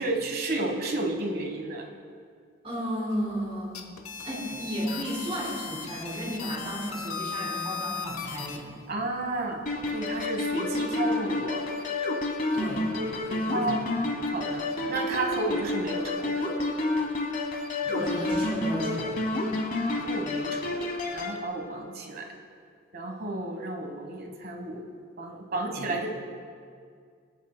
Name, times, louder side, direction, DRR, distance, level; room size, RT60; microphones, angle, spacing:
voice 1, 0.0-1.9 8.9-9.6 9.9-11.6 12.6-12.7 13.0-13.1 13.5-13.8 14.2-16.5 19.9-22.3 22.9-24.8 25.2-26.1, right 2 dB, 45° right, 2 dB, 1.2 m, -32 dB
voice 2, 2.6-3.7 4.2-8.7 12.5-12.8 13.2-13.8 17.8-19.1 25.5-25.9, equal, 30° right, -4 dB, 3.0 m, -33 dB
sound 1, 3.6-8.6, left 6 dB, 85° left, 0.8 m, -37 dB
sound 2, 9.7-21.4, left 2 dB, 40° left, 0.9 m, -29 dB
22.0 x 8.3 x 2.2 m, 2.1 s
head